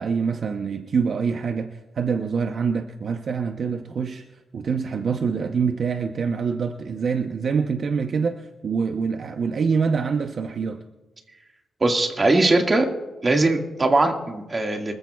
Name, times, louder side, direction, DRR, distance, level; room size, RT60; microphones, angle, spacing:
voice 1, 0.0-4.3 4.5-10.8, right 5 dB, 60° right, 0.7 m, -25 dB
voice 2, 11.8-12.9 13.2-15.0, right 2 dB, 30° right, 1.8 m, -20 dB
25.0 x 14.5 x 2.3 m
cardioid pair, 105°, 0 cm